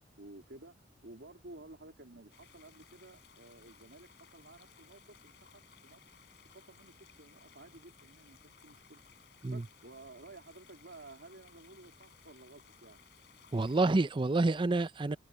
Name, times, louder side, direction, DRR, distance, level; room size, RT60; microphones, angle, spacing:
voice 1, 0.2-6.0 6.5-9.0 9.5-13.0, right 2 dB, 85° right, 2.9 m, -54 dB
sound 1, 2.3-14.0, left 7 dB, 65° left, 4.8 m, -61 dB
voice 2, 13.5-15.2, right 2 dB, 30° right, 0.5 m, -28 dB
head